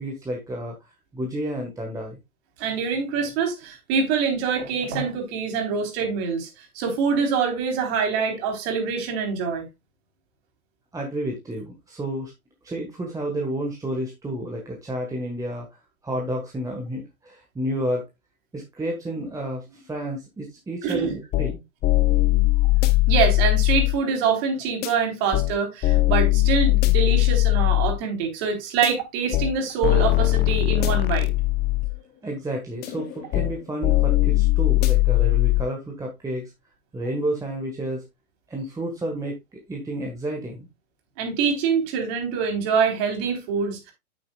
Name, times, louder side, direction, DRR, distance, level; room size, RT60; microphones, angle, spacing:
voice 1, 0.0-2.2 10.9-12.3 12.6-15.7 16.0-18.1 18.5-21.6 32.2-36.5 36.9-38.0 38.5-40.7, right 1 dB, 10° right, 1.5 m, -31 dB
voice 2, 2.6-9.7 20.8-21.2 23.1-31.3 41.2-43.9, right 6 dB, 45° right, 4.0 m, -25 dB
sound 1, 20.9-21.0 21.3-21.5 21.8-23.9 24.8-24.9 25.3-25.5 25.8-28.0 28.8-28.9 29.3-29.5 29.8-31.9 32.8-33.5 33.8-35.6, left 19 dB, 20° left, 0.8 m, -20 dB
9.2 x 8.6 x 2.3 m
hypercardioid pair, 115°, 43 cm